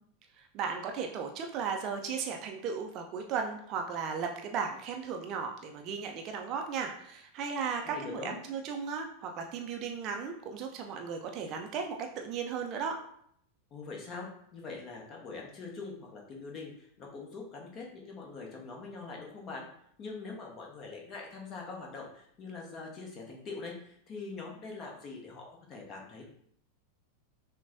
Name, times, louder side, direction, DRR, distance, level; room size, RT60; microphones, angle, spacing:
voice 1, 0.4-13.0, right 6 dB, 35° right, 3 dB, 0.5 m, -36 dB
voice 2, 7.8-8.4 13.7-19.7 20.0-26.2, left 4 dB, 30° left, -1 dB, 1.0 m, -43 dB
5.9 x 2.2 x 2.6 m, 0.67 s
figure-of-eight pair, 90°, 0 cm